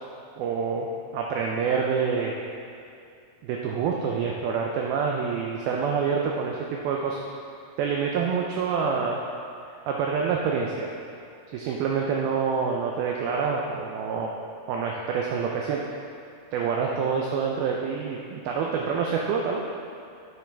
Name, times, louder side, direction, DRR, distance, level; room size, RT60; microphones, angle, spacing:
voice 1, 0.4-0.9 1.1-2.3 3.4-7.2 7.8-9.2 9.9-10.9 11.5-14.3 14.7-15.8 16.5-19.6, right 6 dB, 90° right, -1 dB, 2.1 m, -27 dB
8.6 x 8.1 x 3.4 m, 2.5 s
omnidirectional pair, 5.0 m